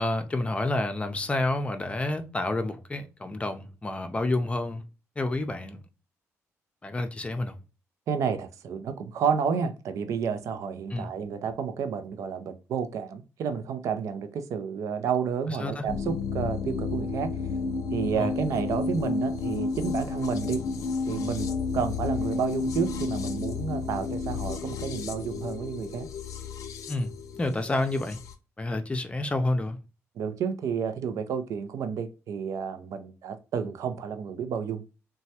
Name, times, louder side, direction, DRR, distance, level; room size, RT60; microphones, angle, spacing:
voice 1, 0.0-4.8 5.2-5.8 6.8-7.5 10.9-11.1 15.6-15.8 18.2-18.3 26.9-27.1 27.4-28.2 28.6-29.8, left 2 dB, 20° left, 0.5 m, -29 dB
voice 2, 8.1-17.3 17.9-20.6 21.1-26.1 30.2-34.8, right 6 dB, 75° right, 0.5 m, -30 dB
sound 1, 15.9-28.3, left 4 dB, 80° left, 0.5 m, -31 dB
3.1 x 2.2 x 2.7 m
cardioid pair, 95°, 6 cm